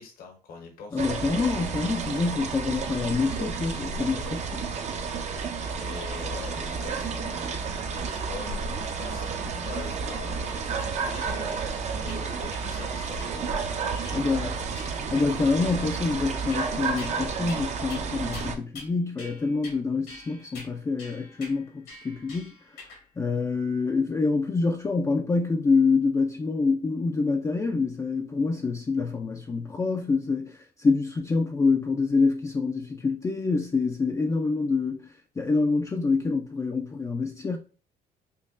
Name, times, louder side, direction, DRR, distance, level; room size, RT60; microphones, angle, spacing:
voice 1, 0.0-1.1 5.8-7.8 8.1-13.5 13.9-14.8 15.0-15.2, left 5 dB, 60° left, 0.9 m, -44 dB
voice 2, 0.9-4.7 14.1-14.5 15.1-22.5 23.2-37.6, left 4 dB, 20° left, 0.3 m, -26 dB
sound 1, 1.0-18.6, right 5 dB, 40° right, 0.5 m, -31 dB
sound 2, 11.7-12.2 12.5-12.6 13.2-13.3 14.0-14.4 14.8-15.3 15.6-16.0 16.5-17.2 17.5-17.6 17.9-18.0 18.3-18.9 19.2-19.8 20.1-23.0, left 2 dB, 85° left, 1.8 m, -46 dB
5.3 x 2.2 x 2.4 m
cardioid pair, 110°, 17 cm